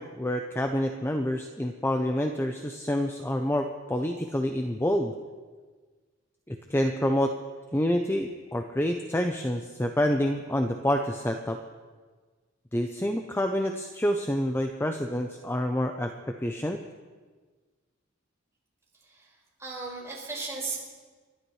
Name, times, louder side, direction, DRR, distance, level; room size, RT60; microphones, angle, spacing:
voice 1, 0.0-5.1 6.5-7.3 7.7-11.6 12.7-16.8, equal, 10° left, 4 dB, 0.5 m, -28 dB
voice 2, 18.9-20.8, right 4 dB, 15° right, -5 dB, 4.9 m, -37 dB
30.0 x 12.0 x 3.2 m, 1.4 s
head